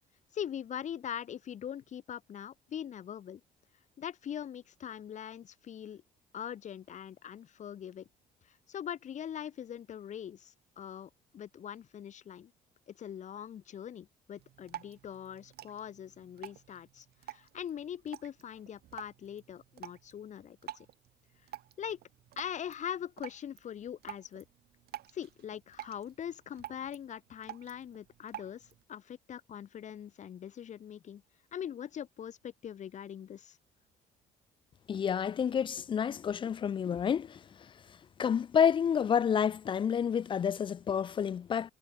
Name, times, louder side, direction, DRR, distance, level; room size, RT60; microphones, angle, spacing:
voice 1, 0.3-3.4 4.0-6.0 6.3-8.1 8.5-12.5 12.9-20.9 21.8-22.0 22.4-24.4 25.1-31.2 31.5-33.6, left 9 dB, 45° left, 1.1 m, -42 dB
Drip, 14.3-28.8, right 13 dB, 70° right, 4.7 m, -50 dB
voice 2, 34.9-37.4 38.2-41.7, left 8 dB, 30° left, 0.3 m, -29 dB
cardioid pair, 110°, 17 cm